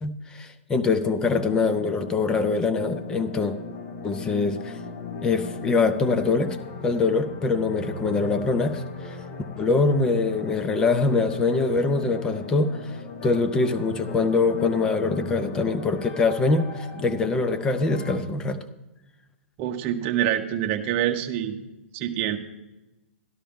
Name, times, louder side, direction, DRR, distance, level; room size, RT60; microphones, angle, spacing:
voice 1, 0.0-3.5 4.0-4.8 5.2-6.6 6.8-9.2 9.6-13.0 13.2-18.6, left 3 dB, 10° left, 10 dB, 0.4 m, -24 dB
sound 1, 1.2-18.2, left 4 dB, 30° left, 1.3 m, -37 dB
voice 2, 19.6-21.6 21.9-22.4, right 11 dB, 25° right, 5 dB, 0.8 m, -26 dB
12.5 x 11.5 x 3.6 m, 1.0 s
hypercardioid pair, 155°, 7 cm